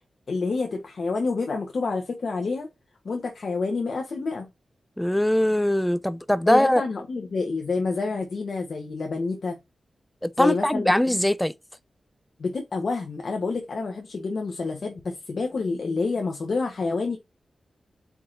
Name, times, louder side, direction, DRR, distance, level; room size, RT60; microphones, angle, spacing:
voice 1, 0.3-2.7 3.0-4.5 6.5-9.6 10.4-10.9 12.4-17.2, left 4 dB, 65° left, 1.1 m, -28 dB
voice 2, 5.0-6.8 10.2-11.5, left 1 dB, 5° left, 0.3 m, -21 dB
4.7 x 3.5 x 2.5 m
cardioid pair, 65°, 0 cm